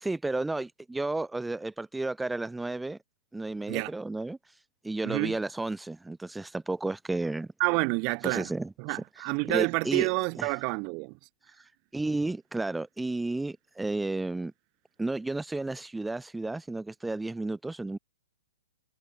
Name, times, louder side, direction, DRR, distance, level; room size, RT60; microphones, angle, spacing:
voice 1, 0.0-3.0 3.3-4.4 4.8-7.5 8.2-9.0 9.5-10.1 10.4-10.6 11.9-14.5 15.0-18.0, right 2 dB, 5° right, 1.3 m, -32 dB
voice 2, 5.0-5.4 7.6-8.5 8.8-11.2, right 35 dB, 40° right, 3.7 m, -28 dB
hypercardioid pair, 125°, 0 cm